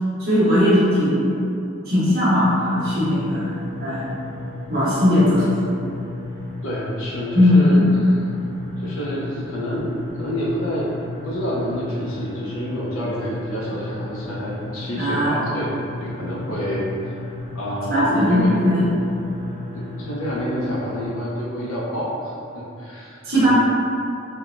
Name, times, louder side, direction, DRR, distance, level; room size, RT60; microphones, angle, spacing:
voice 1, 0.2-1.3 1.8-4.1 4.7-5.6 7.3-7.9 15.0-15.4 17.9-18.9 23.2-23.5, left 1 dB, 45° right, -12 dB, 1.0 m, -18 dB
sound 1, 2.3-21.1, left 2 dB, 35° left, 0.8 m, -34 dB
voice 2, 6.6-8.2 8.8-9.9 10.2-10.9 11.2-17.2 17.5-18.6 19.7-23.5, equal, 80° left, -6 dB, 0.6 m, -28 dB
4.6 x 2.1 x 2.5 m, 2.6 s
head